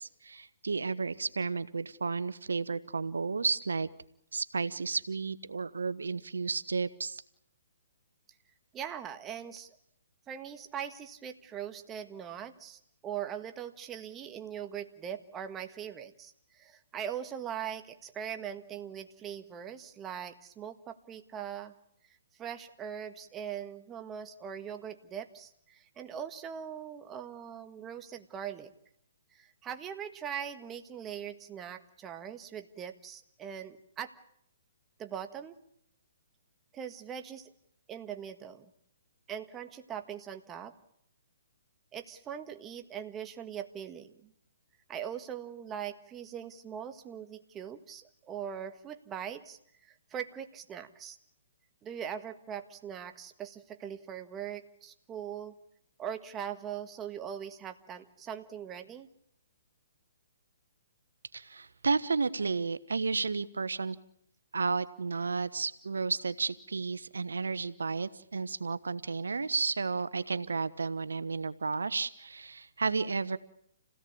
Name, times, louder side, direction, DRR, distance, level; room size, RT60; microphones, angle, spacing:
voice 1, 0.0-3.9 4.3-7.2 61.3-64.0 64.5-73.4, right 4 dB, 85° right, 15 dB, 1.0 m, -32 dB
voice 2, 8.7-9.8 10.3-21.7 22.4-28.7 29.3-34.1 35.0-35.6 36.7-37.5 37.9-38.7 39.3-40.7 41.9-44.3 44.9-51.2 51.8-55.5 56.0-59.1, right 9 dB, 20° right, 8 dB, 1.6 m, -41 dB
28.0 x 17.0 x 8.6 m, 0.74 s
hypercardioid pair, 140°, 0 cm